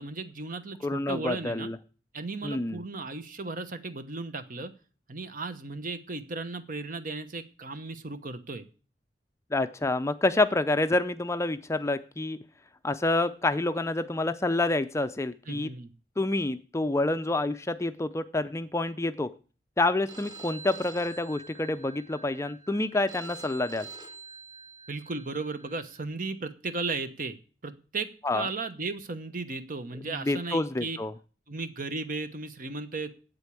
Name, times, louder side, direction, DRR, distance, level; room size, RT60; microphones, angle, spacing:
voice 1, 0.0-1.7 2.1-4.7 5.1-8.6 15.5-15.9 24.9-27.3 27.6-31.0 31.5-33.1, right 3 dB, 50° right, 11 dB, 1.0 m, -35 dB
voice 2, 0.8-1.8 2.4-2.8 9.5-12.4 12.8-15.7 16.2-19.3 19.8-23.9 28.2-28.5 30.1-31.1, left 2 dB, 15° left, 11 dB, 0.4 m, -28 dB
Telephone, 20.1-26.0, right 4 dB, 25° right, 1.7 m, -47 dB
8.3 x 8.0 x 8.4 m, 0.38 s
head